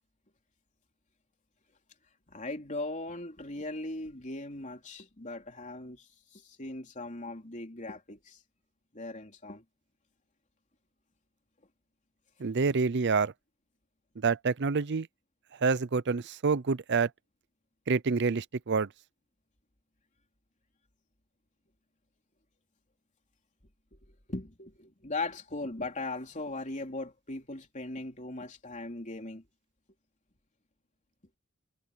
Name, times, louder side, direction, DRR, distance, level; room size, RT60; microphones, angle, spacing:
voice 1, 2.3-8.4 8.9-9.6 23.9-29.4, left 2 dB, 35° left, 3.6 m, -39 dB
voice 2, 12.4-13.3 14.2-15.1 15.6-17.1 17.9-18.9, right 4 dB, 50° right, 0.6 m, -27 dB
head